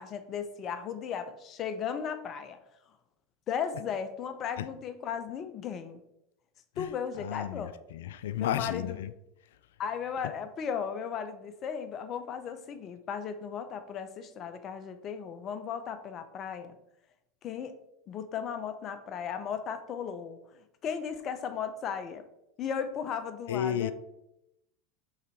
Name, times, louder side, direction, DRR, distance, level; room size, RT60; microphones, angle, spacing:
voice 1, 0.0-2.6 3.5-6.0 6.8-7.7 8.3-9.0 9.8-16.7 17.4-17.8 18.1-22.3 22.6-23.9, left 7 dB, 40° left, 0.7 m, -36 dB
voice 2, 7.2-9.1 23.5-23.9, left 10 dB, 75° left, 0.4 m, -33 dB
5.8 x 3.9 x 4.5 m
hypercardioid pair, 95°, 0 cm